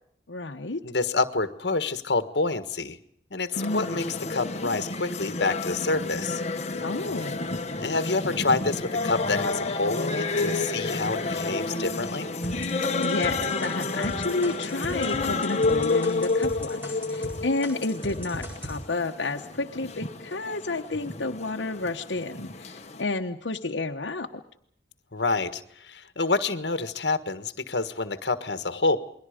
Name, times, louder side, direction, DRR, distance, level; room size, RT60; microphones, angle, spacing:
voice 1, 0.3-0.8 3.6-4.0 6.8-7.5 12.8-24.4, left 2 dB, 85° left, 3 dB, 1.1 m, -31 dB
voice 2, 0.8-3.0 3.3-4.0 4.3-6.4 7.8-12.3 25.1-29.0, left 3 dB, 70° left, 10 dB, 1.6 m, -27 dB
sound 1, 3.5-23.0, left 3 dB, 40° left, 1.6 m, -30 dB
sound 2, 12.4-17.3 17.6-18.7, equal, 10° right, 7.9 m, -37 dB
29.0 x 22.0 x 5.2 m, 0.69 s
head